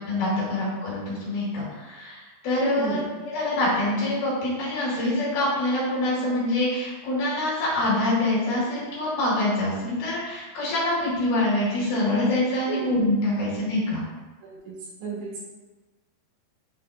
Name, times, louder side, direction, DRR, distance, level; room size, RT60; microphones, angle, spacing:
voice 1, 0.1-14.0, left 1 dB, 60° left, -7 dB, 3.3 m, -25 dB
voice 2, 14.4-15.5, right 4 dB, 90° right, -6 dB, 4.4 m, -34 dB
9.7 x 4.3 x 2.3 m, 1.2 s
omnidirectional pair, 5.4 m